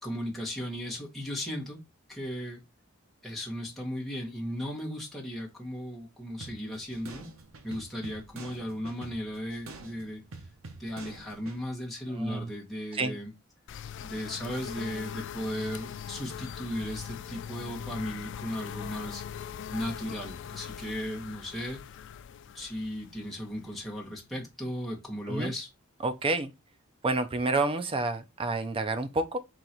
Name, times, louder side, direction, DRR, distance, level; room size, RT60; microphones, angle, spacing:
voice 1, 0.0-1.8 2.1-2.6 3.2-7.3 7.6-10.2 10.8-13.3 14.0-22.0 22.5-25.7, equal, ahead, 1.3 m, -36 dB
sound 1, 6.4-11.6, right 3 dB, 70° right, 0.8 m, -47 dB
voice 2, 12.1-12.5 12.9-13.2 25.3-25.5 26.0-26.5 27.0-29.4, right 3 dB, 25° right, 0.5 m, -29 dB
sound 2, 13.7-24.3, left 8 dB, 60° left, 0.3 m, -41 dB
3.9 x 2.9 x 4.3 m
head